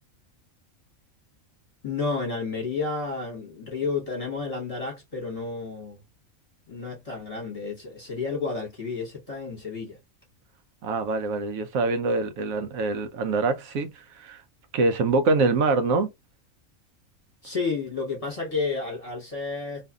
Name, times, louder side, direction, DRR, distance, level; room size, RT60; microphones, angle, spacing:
voice 1, 1.8-6.0 6.7-10.0 17.4-19.9, left 4 dB, 30° left, 1.0 m, -31 dB
voice 2, 10.8-14.4 14.7-16.1, right 3 dB, 85° right, 1.0 m, -24 dB
2.7 x 2.4 x 2.3 m
omnidirectional pair, 1.4 m